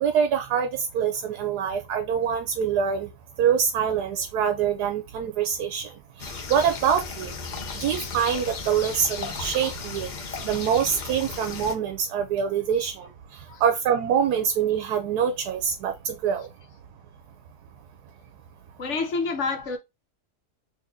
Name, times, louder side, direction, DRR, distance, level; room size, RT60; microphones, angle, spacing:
voice 1, 0.0-3.1 3.4-5.9 6.2-7.3 7.8-10.1 10.4-13.1 13.6-16.5, right 8 dB, 80° right, 1.2 m, -25 dB
sound 1, 6.2-11.7, left 4 dB, 85° left, 0.4 m, -35 dB
voice 2, 18.8-19.8, left 4 dB, 55° left, 1.0 m, -28 dB
4.1 x 2.8 x 2.6 m
omnidirectional pair, 1.7 m